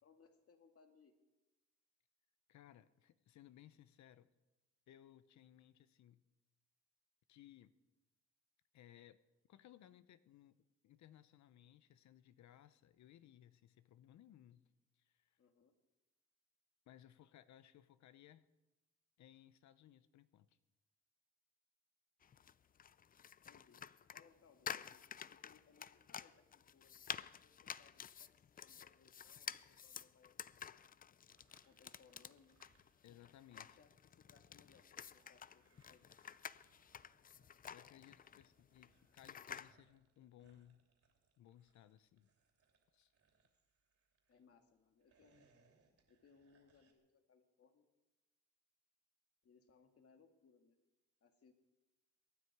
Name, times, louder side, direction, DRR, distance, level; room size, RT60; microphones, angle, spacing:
voice 1, 0.0-1.1 15.4-15.7 23.4-23.8 24.1-26.5 26.7-27.0 27.4-28.3 28.6-30.8 31.7-32.6 33.5-36.0 44.3-45.5 46.1-47.9 49.4-50.8 51.2-51.5, left 5 dB, 50° left, 6 dB, 1.9 m, -69 dB
voice 2, 2.5-4.3 4.9-6.2 7.3-7.7 8.7-9.2 9.5-10.6 10.8-14.7 15.0-15.4 16.9-18.5 19.2-20.6 25.2-25.3 33.0-33.7 37.7-40.8 41.4-42.3 42.9-43.1, left 12 dB, 65° left, 15 dB, 0.7 m, -62 dB
sound 1, 22.2-39.7, left 8 dB, 30° left, 0.4 m, -51 dB
sound 2, 31.3-33.5 33.8-44.4 44.9-46.9, right 5 dB, 50° right, 2.8 m, -77 dB
23.0 x 9.6 x 4.7 m, 1.1 s
cardioid pair, 90°, 30 cm